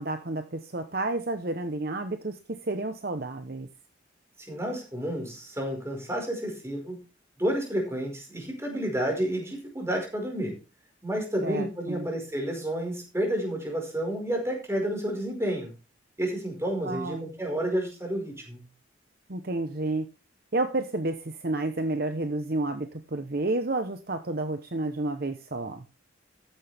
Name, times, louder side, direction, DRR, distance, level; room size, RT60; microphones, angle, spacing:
voice 1, 0.0-3.7 11.4-12.1 16.8-17.3 19.3-20.1 20.5-25.8, right 2 dB, 50° right, 8 dB, 0.9 m, -30 dB
voice 2, 4.5-7.0 7.4-10.6 11.0-15.7 16.2-18.6, right 1 dB, 15° right, 1 dB, 5.0 m, -30 dB
14.0 x 10.0 x 3.5 m, 0.30 s
head